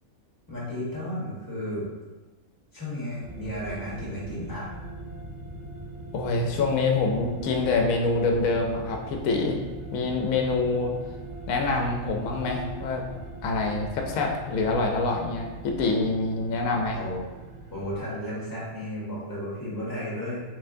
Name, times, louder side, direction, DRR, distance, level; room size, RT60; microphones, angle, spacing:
voice 1, 0.5-1.9 2.7-4.7 16.9-17.2 17.7-20.4, equal, 15° left, -7 dB, 1.5 m, -33 dB
sound 1, 3.2-18.0, right 3 dB, 55° right, 0.8 m, -41 dB
voice 2, 6.1-9.6 9.9-10.9 11.5-13.0 13.4-17.0, left 3 dB, 75° left, 2 dB, 1.0 m, -26 dB
4.3 x 3.9 x 2.6 m, 1.2 s
omnidirectional pair, 1.5 m